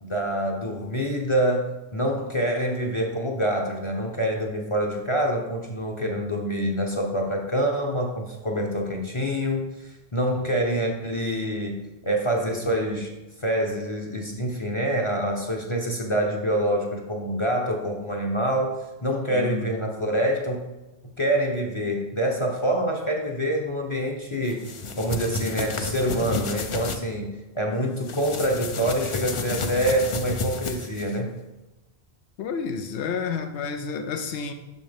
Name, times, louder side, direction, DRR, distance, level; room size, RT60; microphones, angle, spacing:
voice 1, 0.0-1.7 1.9-13.1 13.4-18.8 19.0-20.6 21.2-24.6 25.0-31.3, right 1 dB, 30° left, 1 dB, 0.7 m, -26 dB
voice 2, 19.3-19.7 32.4-34.5, left 6 dB, 90° left, 7 dB, 0.9 m, -30 dB
sound 1, 24.5-27.0 28.0-31.2, left 4 dB, 50° left, 0.4 m, -31 dB
6.3 x 6.2 x 3.4 m, 1.1 s
omnidirectional pair, 1.1 m